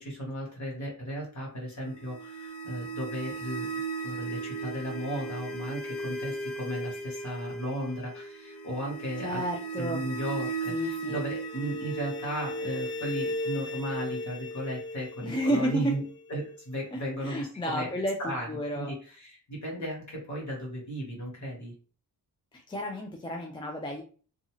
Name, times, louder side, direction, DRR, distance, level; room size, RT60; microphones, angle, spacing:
voice 1, 0.0-3.7 4.0-9.4 9.8-16.0 16.3-17.9 18.2-21.7, equal, 45° left, -2 dB, 1.3 m, -35 dB
sound 1, 1.8-16.8, right 2 dB, 75° left, 1.2 m, -36 dB
voice 2, 9.2-10.0 10.7-11.2 15.2-16.0 16.9-18.2 18.5-18.9 22.5-24.0, equal, 15° left, 1 dB, 0.3 m, -31 dB
2.6 x 2.3 x 3.0 m, 0.39 s
wide cardioid pair, 160°, 39 cm